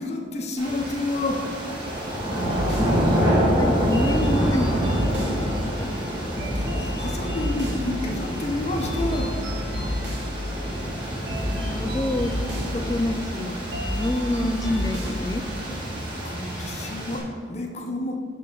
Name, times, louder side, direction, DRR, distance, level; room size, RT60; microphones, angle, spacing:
voice 1, 0.0-1.4 6.5-9.3 16.2-18.1, left 2 dB, 35° left, 2 dB, 0.8 m, -29 dB
sound 1, 0.6-17.2, equal, 25° right, 1.6 m, -27 dB
sound 2, 2.4-15.3, left 1 dB, 60° right, 1.8 m, -31 dB
voice 2, 3.5-5.9 6.5-6.6 11.5-12.3 12.7-15.4, left 1 dB, 20° left, 8 dB, 0.4 m, -28 dB
11.0 x 5.5 x 3.8 m, 2.2 s
head